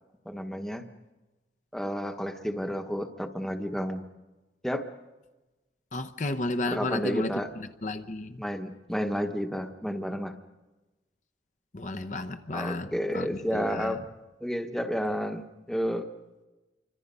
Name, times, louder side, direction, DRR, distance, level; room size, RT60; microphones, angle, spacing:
voice 1, 0.2-0.9 1.7-4.0 4.6-4.9 6.7-7.5 8.4-10.4 12.5-14.0 14.4-16.1, equal, 5° left, 6 dB, 1.1 m, -31 dB
voice 2, 5.9-7.3 7.8-8.4 11.7-12.9 13.1-13.3 13.5-13.9, left 2 dB, 45° left, 9 dB, 0.9 m, -32 dB
28.5 x 25.0 x 5.5 m, 1.1 s
head